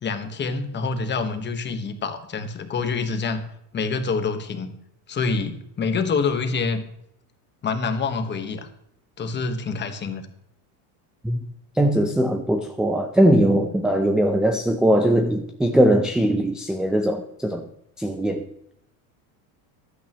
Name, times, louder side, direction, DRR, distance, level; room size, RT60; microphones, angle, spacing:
voice 1, 0.0-3.4 3.7-4.7 5.1-6.8 7.6-8.7 9.2-10.3, left 4 dB, 25° left, 1.3 m, -26 dB
voice 2, 11.8-17.7 18.0-18.5, right 1 dB, ahead, 0.5 m, -20 dB
15.0 x 11.5 x 3.0 m
supercardioid pair, 135°, 45 cm